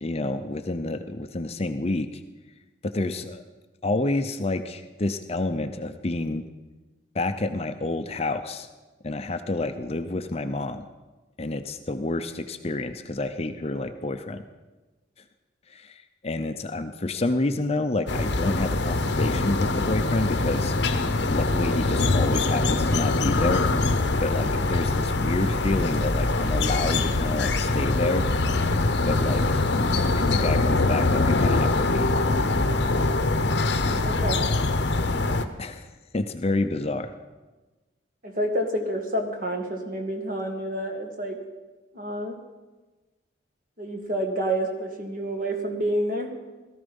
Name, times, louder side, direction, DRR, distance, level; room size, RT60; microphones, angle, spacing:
voice 1, 0.0-2.2 2.8-3.4 3.8-6.5 7.1-8.7 9.0-10.8 11.4-14.4 15.7-16.0 16.2-20.8 21.3-23.6 24.2-28.3 29.1-29.6 30.2-32.1 35.3-35.9 36.1-37.1, left 2 dB, 30° left, 8 dB, 0.6 m, -28 dB
sound 1, 18.1-35.5, left 2 dB, 60° left, 0.8 m, -23 dB
voice 2, 34.0-34.5 38.2-41.4 41.9-42.4 43.8-46.3, right 1 dB, 45° right, 4 dB, 1.8 m, -28 dB
17.5 x 13.5 x 5.4 m, 1.2 s
head